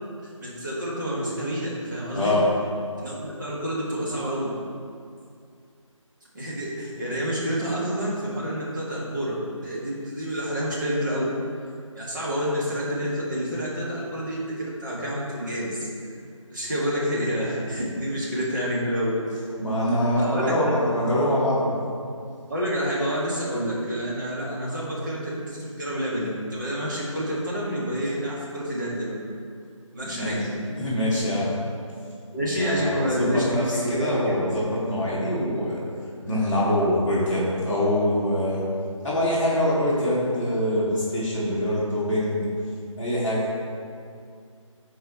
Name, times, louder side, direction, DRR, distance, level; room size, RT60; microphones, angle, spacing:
voice 1, 0.4-2.3 3.0-4.5 6.3-11.2 11.9-15.8 16.5-19.1 20.1-20.6 22.5-29.1 29.9-30.5 32.3-34.3, equal, 35° right, -7 dB, 2.0 m, -28 dB
voice 2, 2.1-2.5 19.6-21.7 30.1-30.3 30.7-31.5 32.6-35.8 36.2-38.6 39.0-42.4 43.0-43.6, left 1 dB, 5° left, -14 dB, 1.5 m, -24 dB
12.5 x 4.7 x 3.2 m, 2.3 s
figure-of-eight pair, 165°, 17 cm